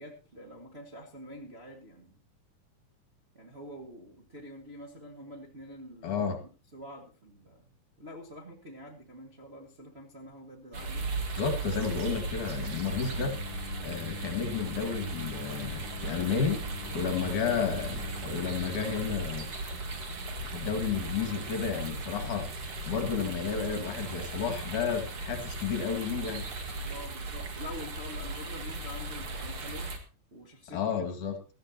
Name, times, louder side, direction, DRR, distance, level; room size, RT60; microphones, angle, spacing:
voice 1, 0.0-2.2 3.3-6.3 6.7-11.0 16.9-17.3 26.8-31.1, left 1 dB, 30° right, -1 dB, 1.3 m, -47 dB
voice 2, 6.0-6.4 11.4-13.4 13.8-16.6 16.9-19.5 20.5-26.5 30.7-31.4, left 6 dB, 60° left, 7 dB, 3.3 m, -32 dB
sound 1, 10.7-30.0, right 2 dB, 45° right, 2.2 m, -37 dB
Singing, 12.6-19.2, left 11 dB, 85° left, 2.6 m, -45 dB
18.0 x 14.0 x 2.9 m, 0.32 s
omnidirectional pair, 4.0 m